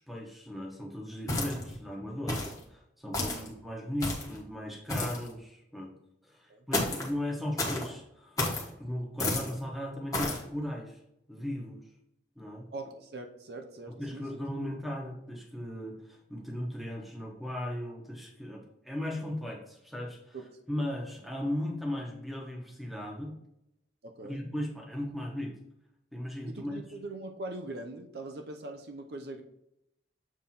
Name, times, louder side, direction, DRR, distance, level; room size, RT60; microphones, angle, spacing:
voice 1, 0.1-5.9 6.2-8.4 8.8-11.0 11.3-11.8 12.4-12.6 14.0-20.4 20.7-23.3 24.2-25.5 26.1-26.8, left 1 dB, ahead, -1 dB, 1.1 m, -37 dB
sound 1, 1.3-1.8 2.3-2.6 3.1-3.5 4.0-4.4 4.9-5.3 6.7-7.1 7.6-7.9 8.4-8.7 9.2-9.5 10.1-10.4, left 2 dB, 20° left, 1.2 m, -31 dB
voice 2, 3.2-3.5 6.5-6.7 12.7-14.3 20.3-20.9 24.0-24.4 26.5-29.4, right 2 dB, 60° right, 4 dB, 0.7 m, -42 dB
7.4 x 3.5 x 4.3 m, 0.80 s
head